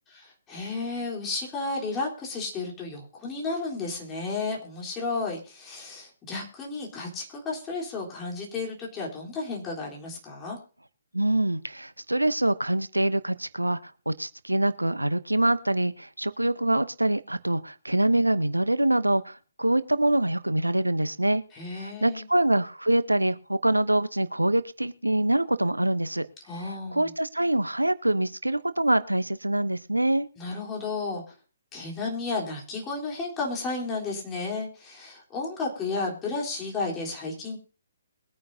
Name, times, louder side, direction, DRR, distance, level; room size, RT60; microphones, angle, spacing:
voice 1, 0.2-10.6 21.5-22.2 26.5-27.1 30.4-31.2 31.7-37.6, left 3 dB, 15° left, -3 dB, 3.7 m, -33 dB
voice 2, 11.1-21.4 21.7-26.3 26.9-30.3, right 1 dB, 85° right, 14 dB, 0.8 m, -25 dB
22.0 x 9.4 x 2.7 m, 0.37 s
figure-of-eight pair, 135°, 0 cm